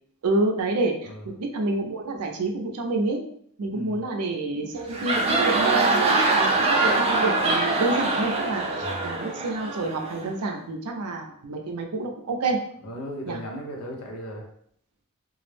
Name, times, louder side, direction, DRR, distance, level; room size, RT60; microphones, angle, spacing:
voice 1, 0.2-1.1 1.4-3.2 3.6-12.6 13.3-13.4, right 2 dB, 80° right, 3 dB, 0.5 m, -28 dB
voice 2, 3.7-4.0 8.8-9.1 12.8-14.5, equal, 75° left, 0 dB, 0.7 m, -36 dB
sound 1, 4.8-10.3, right 3 dB, 25° right, 0.3 m, -23 dB
2.3 x 2.0 x 3.2 m, 0.65 s
head